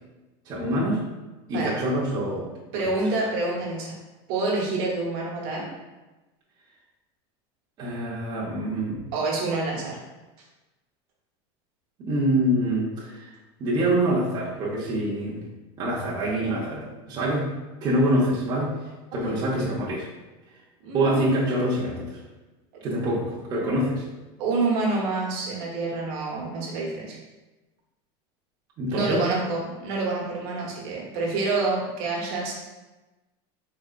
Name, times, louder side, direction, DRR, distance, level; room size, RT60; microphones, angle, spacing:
voice 1, 0.5-1.0 1.5-2.5 2.7-2.8 7.8-9.1 12.0-13.3 13.6-15.4 15.8-17.5 17.8-18.8 19.2-20.1 20.9-22.2 22.8-24.0 28.8-29.3, right 1 dB, 30° right, -6 dB, 0.8 m, -25 dB
voice 2, 2.7-3.9 4.3-5.7 9.1-10.0 19.2-19.4 20.8-21.3 24.4-27.2 28.9-32.5, right 3 dB, 65° right, -3 dB, 1.1 m, -27 dB
4.2 x 3.7 x 2.4 m, 1.1 s
supercardioid pair, 155°, 14 cm